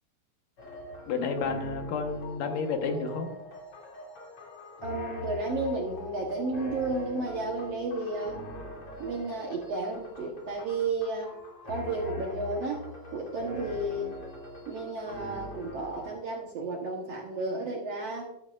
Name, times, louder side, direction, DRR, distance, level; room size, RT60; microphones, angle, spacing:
sound 1, 0.6-16.1, left 1 dB, 40° left, 3.2 m, -42 dB
voice 1, 1.1-3.3, left 4 dB, 70° left, 4 dB, 2.7 m, -30 dB
voice 2, 4.8-8.4 9.0-11.3 11.7-12.8 13.1-14.1 14.7-18.3, right 2 dB, 65° right, 0 dB, 1.7 m, -32 dB
13.0 x 11.5 x 2.4 m, 0.85 s
omnidirectional pair, 4.1 m